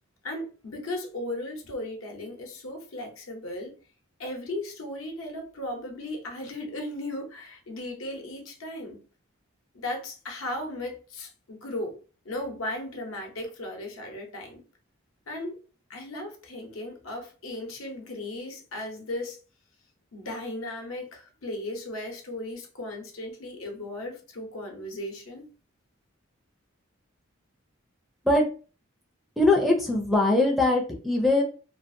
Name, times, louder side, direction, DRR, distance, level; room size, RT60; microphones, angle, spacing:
voice 1, 0.2-3.7 4.2-9.0 9.7-11.9 12.2-14.6 15.3-15.6 15.9-19.4 20.1-25.5, left 1 dB, 80° left, 0.8 m, -36 dB
voice 2, 29.4-31.4, left 2 dB, ahead, 0.4 m, -21 dB
2.5 x 2.4 x 2.6 m
head